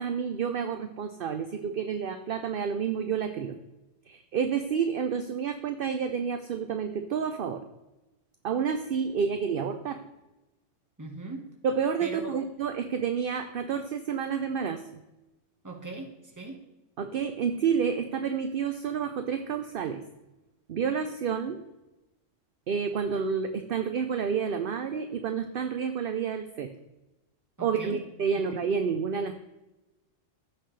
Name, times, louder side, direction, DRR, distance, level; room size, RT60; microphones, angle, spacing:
voice 1, 0.0-3.6 4.1-7.6 8.4-10.0 11.6-14.8 17.0-20.0 20.7-21.6 22.7-26.7 27.6-29.4, right 6 dB, 55° right, 8 dB, 0.7 m, -29 dB
voice 2, 11.0-11.4 12.0-12.4 15.6-16.6 27.6-28.0 28.3-28.5, right 2 dB, 15° right, 1 dB, 1.4 m, -40 dB
15.0 x 6.0 x 3.2 m, 1.0 s
omnidirectional pair, 1.3 m